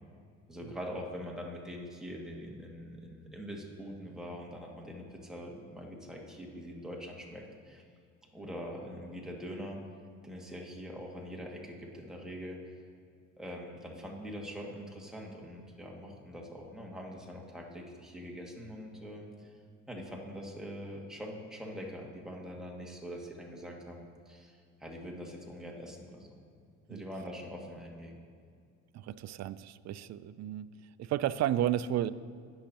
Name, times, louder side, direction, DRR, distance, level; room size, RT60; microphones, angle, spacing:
voice 1, 0.5-7.8 8.3-9.8 10.2-12.6 13.4-19.5 19.9-26.3 26.9-28.2, equal, ahead, -2 dB, 2.2 m, -43 dB
voice 2, 28.9-30.7 31.0-32.1, right 12 dB, 50° right, 16 dB, 0.5 m, -32 dB
18.5 x 6.4 x 3.0 m, 2.2 s
supercardioid pair, 70°, 35 cm